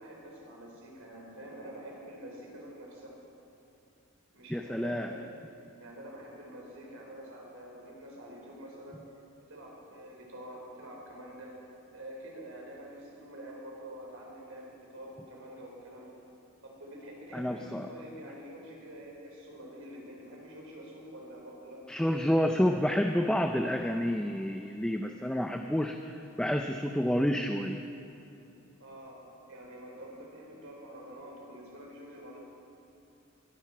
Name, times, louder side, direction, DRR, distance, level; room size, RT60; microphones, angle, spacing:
voice 1, 0.0-3.1 4.3-5.2 5.8-9.0 9.5-11.5 11.9-16.1 16.6-21.8 28.8-29.2 29.5-32.4, right 1 dB, 75° right, -2 dB, 3.8 m, -47 dB
voice 2, 4.5-5.1 17.3-17.9 21.9-27.8, equal, 5° left, 4 dB, 0.4 m, -29 dB
21.0 x 10.5 x 4.6 m, 2.9 s
head